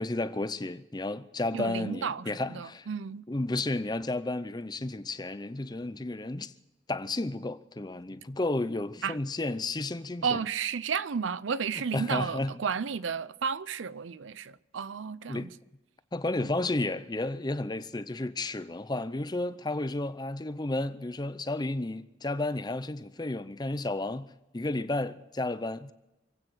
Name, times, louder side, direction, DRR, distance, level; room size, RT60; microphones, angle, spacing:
voice 1, 0.0-2.9 3.3-6.5 6.9-10.4 11.9-12.5 15.3-15.5 16.1-25.9, left 2 dB, 20° left, 0.6 m, -32 dB
voice 2, 1.5-3.3 9.0-9.2 10.2-15.5 16.4-16.5, right 6 dB, 85° right, 0.6 m, -32 dB
26.0 x 9.0 x 6.2 m
head